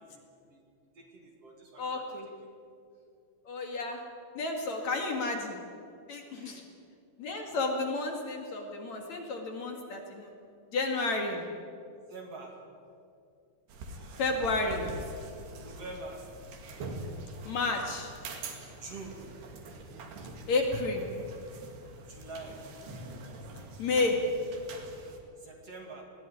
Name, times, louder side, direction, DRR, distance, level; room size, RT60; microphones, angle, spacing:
voice 1, 0.9-2.2 6.4-6.6 12.1-12.6 15.6-16.3 18.7-19.3 22.1-22.6 25.4-26.0, right 3 dB, 45° right, 2 dB, 2.9 m, -45 dB
voice 2, 1.8-2.3 3.4-4.0 4.3-5.6 6.1-6.6 7.2-10.3 10.7-11.4 14.2-14.9 17.4-18.1 20.5-21.0 23.8-24.2, left 3 dB, 50° left, 2 dB, 3.1 m, -31 dB
sound 1, 13.7-25.2, right 2 dB, 90° right, 4.2 m, -44 dB
21.5 x 17.0 x 10.0 m, 2.4 s
omnidirectional pair, 4.4 m